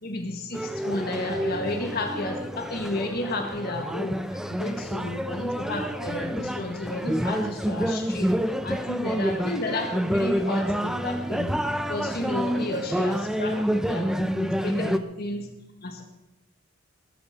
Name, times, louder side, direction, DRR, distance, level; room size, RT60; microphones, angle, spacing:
voice 1, 0.0-4.2 4.5-8.3 8.6-11.5 11.9-15.5 15.8-16.0, left 1 dB, 45° left, 3 dB, 1.7 m, -32 dB
sound 1, 0.5-15.0, equal, ahead, 0.6 m, -28 dB
20.0 x 8.7 x 6.8 m, 0.96 s
head